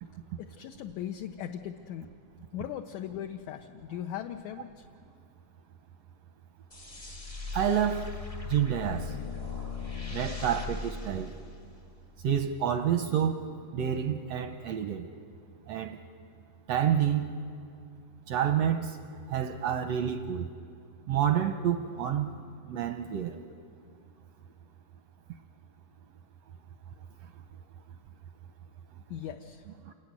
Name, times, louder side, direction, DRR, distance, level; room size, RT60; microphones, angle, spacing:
voice 1, 0.4-2.1 2.5-4.9 29.1-29.7, left 10 dB, 75° left, 5 dB, 1.9 m, -39 dB
sound 1, 6.7-12.0, left 5 dB, 55° left, 0.3 m, -38 dB
voice 2, 7.5-8.1 8.5-9.2 10.1-11.3 12.2-13.4 13.7-15.1 15.7-16.0 16.7-17.3 18.3-19.0 19.3-20.5 21.1-22.4 22.7-23.4 29.8-29.9, right 9 dB, 75° right, 8 dB, 1.5 m, -28 dB
28.0 x 14.5 x 9.7 m, 2.3 s
omnidirectional pair, 3.9 m